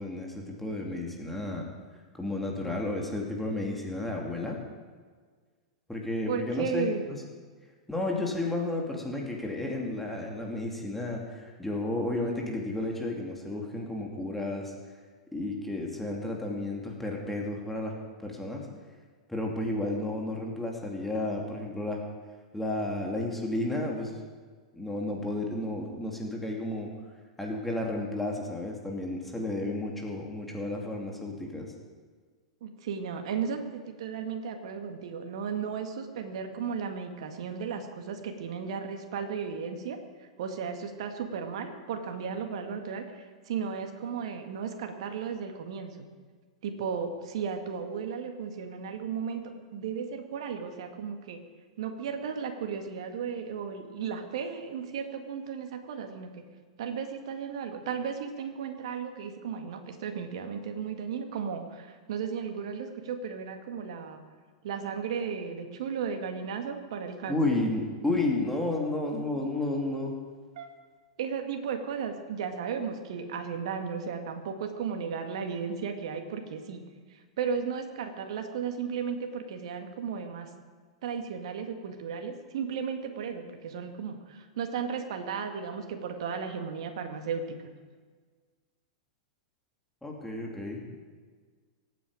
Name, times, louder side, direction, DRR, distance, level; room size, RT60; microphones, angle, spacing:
voice 1, 0.0-1.6 2.1-4.6 5.9-6.9 7.9-14.7 15.3-17.9 18.2-18.6 19.3-22.0 22.5-24.2 24.7-26.9 27.4-31.7 67.3-70.1 90.0-90.8, left 2 dB, 5° left, -1 dB, 2.7 m, -32 dB
voice 2, 6.3-7.1 32.6-45.9 46.6-49.4 49.7-51.4 51.8-56.3 56.8-64.2 64.6-67.6 70.6-70.7 71.2-76.9 77.4-80.5 81.0-87.4, right 6 dB, 60° right, 5 dB, 1.9 m, -35 dB
23.5 x 9.3 x 5.1 m, 1.5 s
hypercardioid pair, 100°, 3 cm